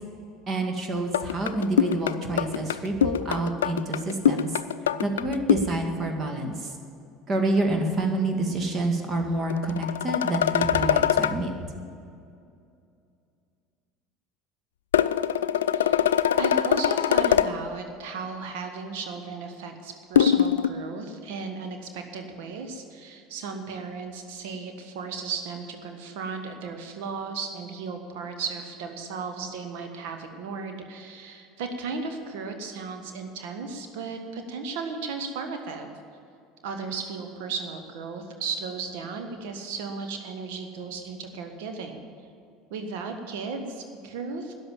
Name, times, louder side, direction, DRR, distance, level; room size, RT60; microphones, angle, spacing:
voice 1, 0.5-4.5 5.0-6.6 7.3-11.5, right 2 dB, 35° right, 4 dB, 2.1 m, -27 dB
sound 1, 1.1-5.7 9.5-11.4 14.9-17.5 20.2-20.7, left 9 dB, 75° left, 0.4 m, -23 dB
voice 2, 15.7-35.9 36.6-42.0 42.7-44.5, right 4 dB, 65° right, 6 dB, 1.6 m, -35 dB
13.5 x 10.0 x 7.4 m, 2.5 s
figure-of-eight pair, 70°, 0 cm